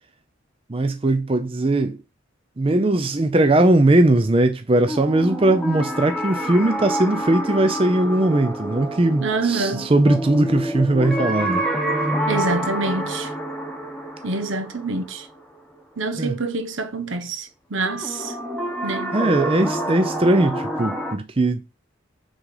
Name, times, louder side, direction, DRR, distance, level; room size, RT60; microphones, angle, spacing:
voice 1, 0.7-2.0 2.6-11.6 16.2-16.4 19.1-21.6, right 2 dB, 25° right, 0.5 m, -19 dB
sound 1, 4.9-15.7 17.8-21.1, right 1 dB, 5° left, 1.0 m, -27 dB
voice 2, 9.2-9.9 12.3-13.3 14.2-15.3 16.0-18.3 18.8-19.1, right 3 dB, 75° right, 0.9 m, -26 dB
6.2 x 3.8 x 4.9 m
head